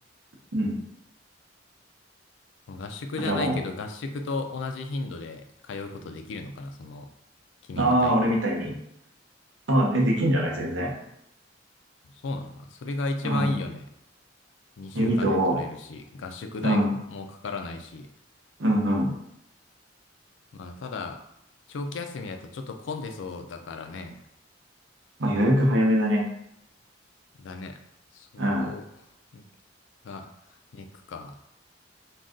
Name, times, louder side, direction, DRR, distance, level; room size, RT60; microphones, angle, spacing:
voice 1, 2.7-7.1 7.7-8.3 12.2-13.9 14.8-18.1 20.5-21.2 21.7-24.2 27.4-27.8 28.1-28.8 29.3-29.4 30.0-30.3 30.7-31.4, left 3 dB, 70° left, 5 dB, 0.4 m, -35 dB
voice 2, 3.2-3.6 7.8-8.8 9.7-10.9 13.2-13.5 14.9-15.6 16.6-16.9 18.6-19.1 25.2-26.3 28.4-28.7, equal, 75° right, -1 dB, 0.8 m, -23 dB
2.5 x 2.3 x 3.6 m, 0.79 s
head